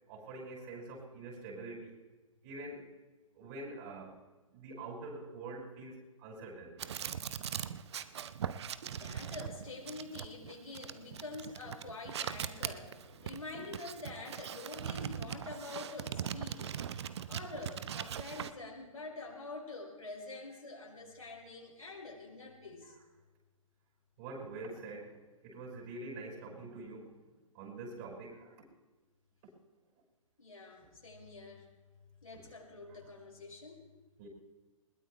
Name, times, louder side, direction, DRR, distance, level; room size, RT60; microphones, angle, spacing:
voice 1, 0.1-2.0 2.4-2.9 3.3-4.2 4.5-6.8 7.4-7.6 16.7-16.8 22.8-23.0 24.2-27.2 27.5-28.6 34.2-34.3, right 2 dB, 35° right, -1 dB, 5.8 m, -45 dB
sound 1, 6.8-18.5, right 8 dB, 50° right, 0.9 m, -40 dB
voice 2, 8.8-16.7 17.3-23.0 30.4-31.7 32.2-33.8, left 3 dB, 85° left, -3 dB, 5.9 m, -46 dB
21.5 x 20.0 x 3.3 m, 1.2 s
figure-of-eight pair, 130°, 18 cm